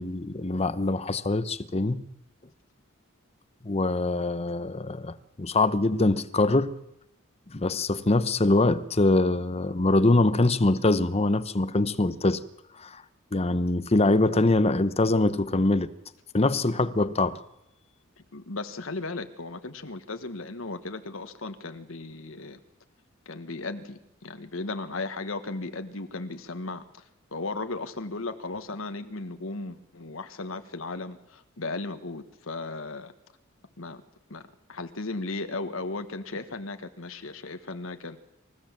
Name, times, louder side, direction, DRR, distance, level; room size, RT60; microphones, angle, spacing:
voice 1, 0.0-2.0 3.6-6.8 7.5-12.4 12.8-13.0 13.3-15.9 16.3-17.4, left 2 dB, 30° left, 0.8 m, -24 dB
voice 2, 18.3-22.6 23.2-27.0 27.3-33.1 33.8-34.0 34.3-38.2, left 3 dB, 75° left, 1.4 m, -36 dB
27.5 x 15.5 x 7.4 m
head